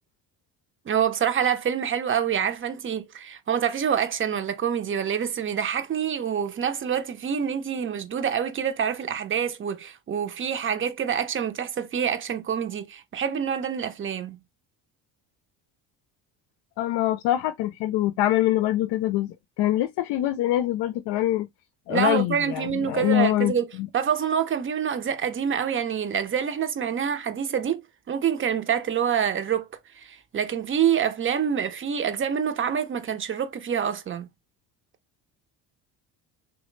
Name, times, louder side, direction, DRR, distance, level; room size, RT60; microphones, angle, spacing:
voice 1, 0.9-14.4 21.9-23.7 23.9-29.7 29.9-34.3, right 8 dB, 30° right, 0.7 m, -26 dB
voice 2, 16.8-21.5 21.9-23.9, left 14 dB, 65° left, 0.5 m, -24 dB
3.1 x 2.2 x 3.1 m
supercardioid pair, 90°, 43 cm